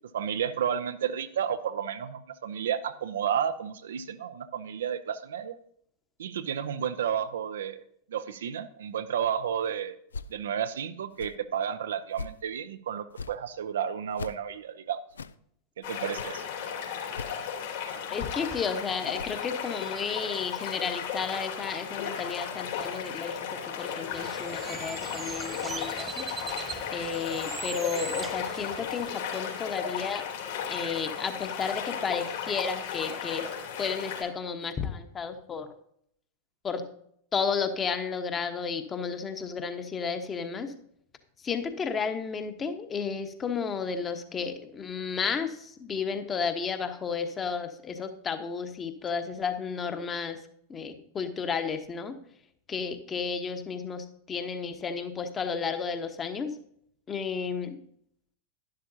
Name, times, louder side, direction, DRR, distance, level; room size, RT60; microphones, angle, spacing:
voice 1, 0.1-5.6 6.2-7.8 8.1-10.0 10.3-15.0 15.8-16.4, right 8 dB, 60° right, 10 dB, 0.6 m, -32 dB
sound 1, 10.1-10.4 11.1-11.3 12.1-12.4 13.1-13.4 14.1-14.4 15.1-15.3 16.1-16.3 17.1-17.3 18.1-18.3 19.1-19.3, left 4 dB, 70° left, 0.4 m, -40 dB
sound 2, 15.8-34.2, left 7 dB, 55° left, 3.0 m, -35 dB
voice 2, 18.1-26.3 26.9-30.2 30.7-33.5 33.8-35.7 36.6-36.8 37.3-40.7 41.4-50.4 50.7-52.1 52.7-56.6 57.1-57.8, left 6 dB, 20° left, 8 dB, 1.3 m, -32 dB
Bird, 24.1-29.1, right 6 dB, 20° right, 0.4 m, -41 dB
11.5 x 11.5 x 2.8 m, 0.68 s
figure-of-eight pair, 90°, 0 cm